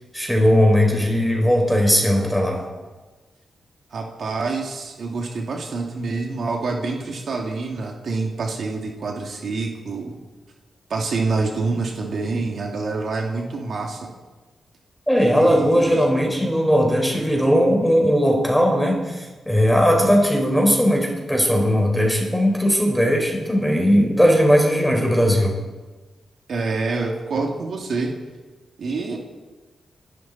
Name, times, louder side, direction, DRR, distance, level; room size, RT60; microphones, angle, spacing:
voice 1, 0.1-2.6 15.1-25.6, equal, ahead, 0 dB, 4.8 m, -18 dB
voice 2, 3.9-10.2 10.9-14.1 15.2-16.0 26.5-28.1 28.8-29.2, right 3 dB, 65° right, 0 dB, 2.5 m, -26 dB
27.0 x 12.0 x 4.3 m, 1.2 s
cardioid pair, 100°, 0 cm